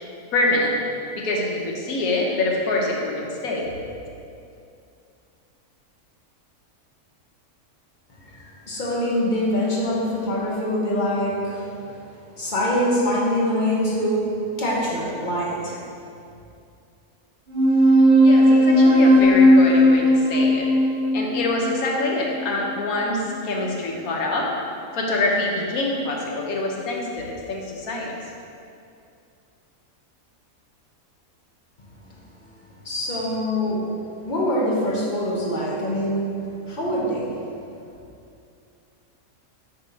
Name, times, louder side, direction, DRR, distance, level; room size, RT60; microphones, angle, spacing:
voice 1, 0.3-0.8 1.1-3.7 18.2-20.7 21.1-24.5 24.9-28.2, left 2 dB, 80° left, -1 dB, 1.3 m, -25 dB
voice 2, 8.3-14.3 14.6-15.8 32.8-33.9 34.2-37.4, equal, 40° left, -4 dB, 0.9 m, -24 dB
sound 1, 17.5-22.5, equal, 55° right, 0.6 m, -16 dB
7.3 x 2.9 x 5.2 m, 2.5 s
omnidirectional pair, 1.5 m